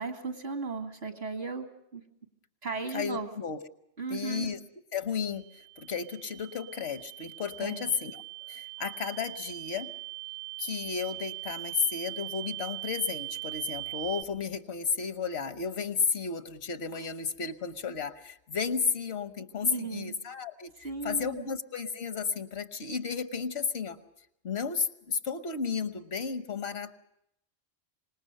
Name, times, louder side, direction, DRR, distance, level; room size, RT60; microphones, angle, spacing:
voice 1, 0.0-2.0 2.6-3.3 4.0-4.5 7.6-7.9 17.0-17.1 19.6-20.1 20.8-21.5, right 4 dB, 70° right, 5 dB, 2.3 m, -36 dB
voice 2, 2.9-3.6 4.1-4.6 4.9-8.2 8.5-9.9 10.6-24.0 24.4-27.0, left 5 dB, 70° left, 10 dB, 1.3 m, -33 dB
sound 1, 5.3-14.2, right 24 dB, 90° right, 1.4 m, -41 dB
25.5 x 20.0 x 6.6 m, 0.78 s
omnidirectional pair, 1.1 m